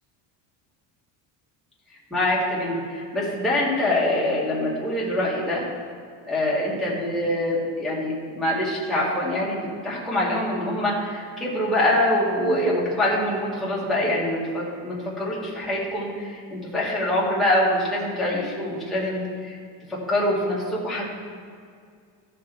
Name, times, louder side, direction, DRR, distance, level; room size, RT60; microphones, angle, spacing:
voice 1, 2.1-5.7 6.3-19.6 19.9-21.1, left 1 dB, ahead, -8 dB, 2.0 m, -24 dB
14.0 x 5.0 x 4.5 m, 2.2 s
cardioid pair, 145°, 45 cm